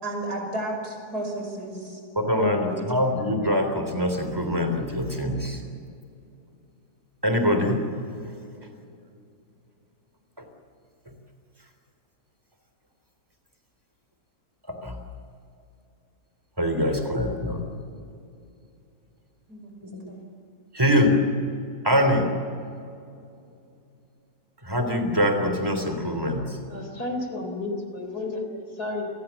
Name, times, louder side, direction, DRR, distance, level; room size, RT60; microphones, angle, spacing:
voice 1, 0.0-2.0 2.4-2.8 19.5-20.3, right 1 dB, 80° right, 2 dB, 6.3 m, -33 dB
voice 2, 2.2-5.6 7.2-7.8 14.7-15.0 16.6-17.6 20.7-21.2 21.8-22.3 24.6-26.6, left 1 dB, 15° right, 6 dB, 3.6 m, -23 dB
voice 3, 26.7-29.1, left 2 dB, 80° left, 5 dB, 4.4 m, -32 dB
28.5 x 20.5 x 7.3 m, 2.5 s
omnidirectional pair, 1.6 m